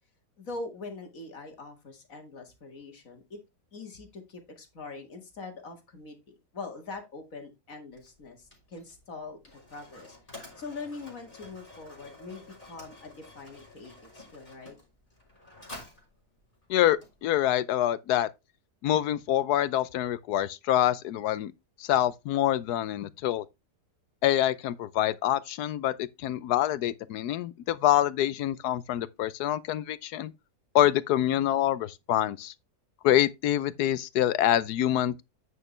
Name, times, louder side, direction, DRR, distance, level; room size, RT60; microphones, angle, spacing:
voice 1, 0.4-3.4 3.7-9.4 9.7-10.2 10.6-14.8, left 3 dB, 55° left, 2.4 m, -43 dB
Mechanisms, 7.9-17.6, left 2 dB, 20° left, 3.7 m, -50 dB
voice 2, 16.7-18.3 18.8-21.5 21.8-23.4 24.2-30.3 30.7-32.5 33.0-35.2, left 12 dB, 80° left, 1.2 m, -26 dB
9.1 x 6.5 x 3.3 m
omnidirectional pair, 1.7 m